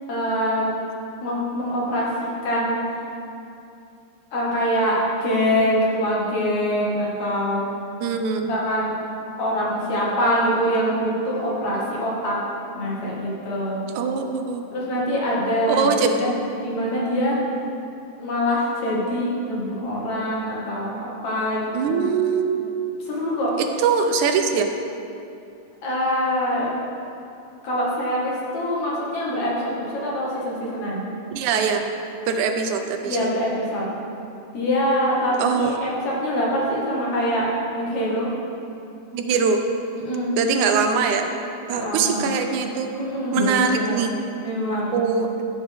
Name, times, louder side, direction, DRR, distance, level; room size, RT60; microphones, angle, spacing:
voice 1, 0.1-0.7 1.2-2.8 4.3-7.7 8.5-8.9 9.4-12.3 12.7-13.8 14.7-17.4 18.2-22.0 23.0-23.5 25.8-26.7 27.6-31.0 33.0-33.9 34.5-37.5 37.7-38.3 40.0-40.3 41.7-42.3 42.9-44.0 44.4-45.0, equal, 65° left, -5 dB, 3.2 m, -24 dB
voice 2, 8.0-8.5 14.0-15.0 15.7-16.4 21.7-22.6 23.6-24.7 31.3-31.9 32.3-33.3 35.4-35.9 39.1-39.6 40.4-41.3 41.7-42.9 43.3-44.1 44.9-45.3, right 5 dB, 80° right, 5 dB, 2.0 m, -22 dB
14.5 x 7.7 x 3.6 m, 2.7 s
omnidirectional pair, 3.5 m